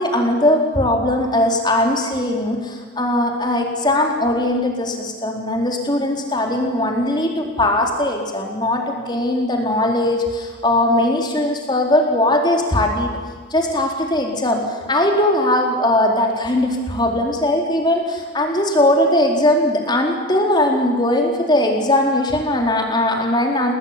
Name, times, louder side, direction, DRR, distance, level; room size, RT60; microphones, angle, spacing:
voice 1, 0.0-13.1 13.5-23.7, left 1 dB, 25° left, 2 dB, 4.3 m, -19 dB
28.5 x 19.5 x 9.9 m, 1.5 s
head